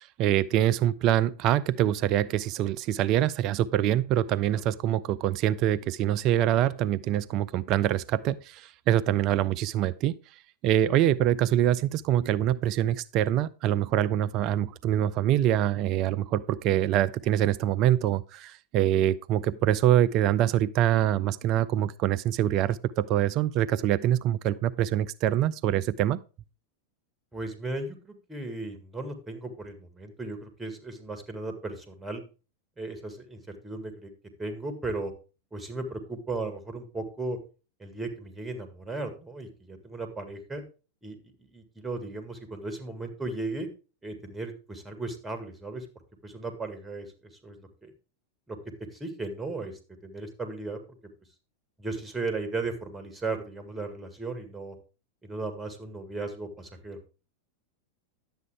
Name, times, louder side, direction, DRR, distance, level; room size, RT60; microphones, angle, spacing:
voice 1, 0.0-10.1 10.6-26.2, right 11 dB, 40° right, 0.4 m, -25 dB
voice 2, 27.3-32.2 32.8-34.1 34.4-35.1 35.5-37.4 37.8-40.6 41.0-43.7 44.0-45.9 46.2-47.1 47.4-47.9 48.5-48.6 48.9-49.7 50.0-50.8 51.8-54.8 55.2-57.0, right 3 dB, 10° right, 2.1 m, -36 dB
11.0 x 8.0 x 3.6 m
figure-of-eight pair, 90°, 0 cm